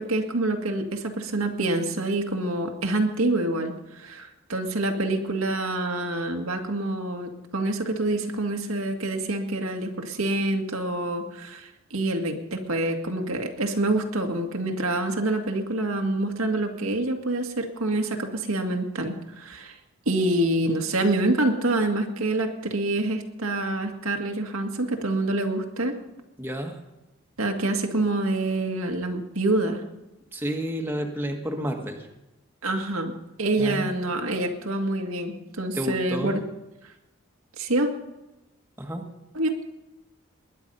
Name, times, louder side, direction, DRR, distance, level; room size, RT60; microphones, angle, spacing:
voice 1, 0.0-19.8 20.1-25.9 27.4-29.8 32.6-33.1 33.4-36.4 37.6-37.9 39.3-39.6, right 2 dB, 90° right, 3 dB, 2.0 m, -26 dB
voice 2, 26.4-26.8 30.3-32.1 33.6-33.9 35.7-36.4 38.8-39.1, equal, 10° right, 2 dB, 1.5 m, -30 dB
20.5 x 10.5 x 5.5 m, 0.99 s
head